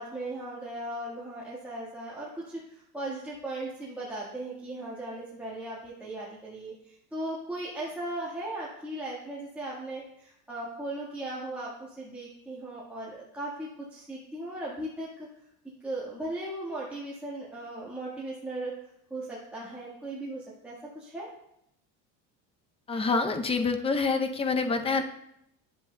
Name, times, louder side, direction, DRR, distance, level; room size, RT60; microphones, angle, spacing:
voice 1, 0.0-15.3 15.8-18.7 19.1-21.3, right 1 dB, 5° right, -8 dB, 1.4 m, -37 dB
voice 2, 22.9-25.0, left 4 dB, 15° left, 7 dB, 0.5 m, -26 dB
10.5 x 7.2 x 2.2 m, 0.76 s
cardioid pair, 130°, 38 cm